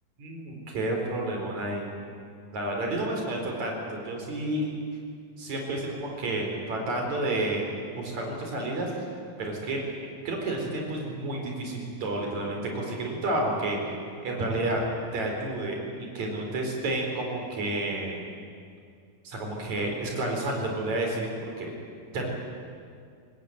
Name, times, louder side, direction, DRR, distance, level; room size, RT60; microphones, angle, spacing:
voice 1, 0.2-1.9 2.5-4.7 5.4-7.7 8.0-9.1 9.4-13.8 14.2-14.8 15.1-18.2 19.2-21.3 21.6-21.7 22.1-22.3, right 2 dB, 55° right, 1 dB, 5.6 m, -30 dB
25.0 x 19.5 x 9.4 m, 2.3 s
omnidirectional pair, 4.0 m